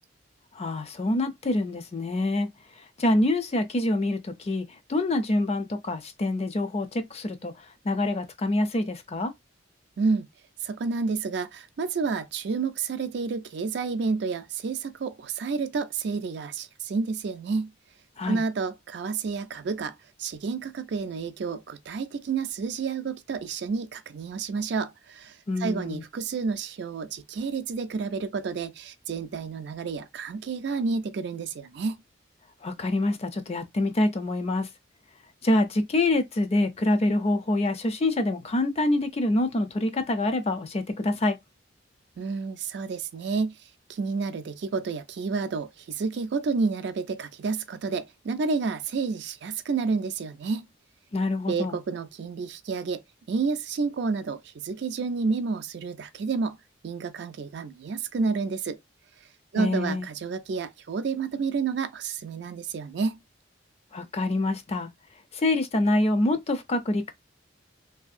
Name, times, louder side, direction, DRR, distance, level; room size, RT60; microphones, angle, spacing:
voice 1, 0.6-2.5 3.0-7.5 7.8-9.3 18.2-18.4 25.5-26.0 32.6-34.7 35.4-41.4 51.1-51.7 59.6-60.1 63.9-64.9 65.3-67.1, left 2 dB, 35° left, 0.4 m, -26 dB
voice 2, 10.0-10.3 10.6-17.7 18.3-32.0 42.2-43.6 43.9-50.7 51.5-53.0 53.3-56.6 56.8-58.8 59.5-63.2, right 4 dB, 60° right, 0.4 m, -30 dB
2.7 x 2.6 x 2.4 m
head